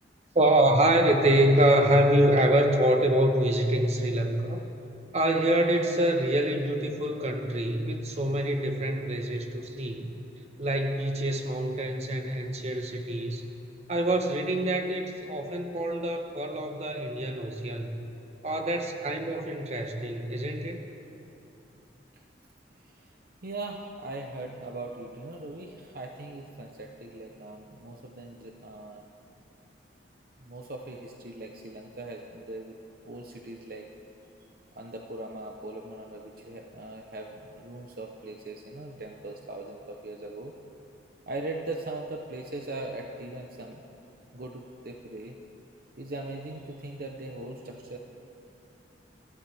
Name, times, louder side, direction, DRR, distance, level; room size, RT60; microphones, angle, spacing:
voice 1, 0.3-4.6 5.1-10.1 10.6-13.4 13.9-18.0 18.4-20.9, right 1 dB, 35° right, 4 dB, 1.1 m, -25 dB
voice 2, 23.4-29.0 30.4-32.8 33.0-33.9 34.7-40.5 41.3-43.8 44.3-45.4 46.0-48.0, right 2 dB, 55° right, 2 dB, 0.8 m, -40 dB
24.0 x 14.5 x 3.5 m, 2.8 s
head